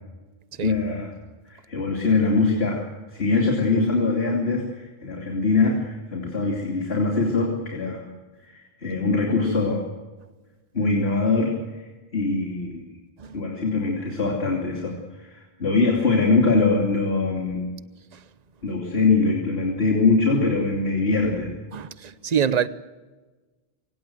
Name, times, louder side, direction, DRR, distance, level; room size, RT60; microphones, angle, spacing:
voice 1, 0.6-1.1 1.4-2.9 3.1-8.0 8.4-9.8 10.7-11.8 12.1-12.8 13.3-17.7 18.6-21.5, left 3 dB, 80° left, 3.2 m, -23 dB
voice 2, 21.7-22.7, right 8 dB, 45° right, 0.9 m, -25 dB
24.5 x 18.0 x 7.8 m
omnidirectional pair, 1.0 m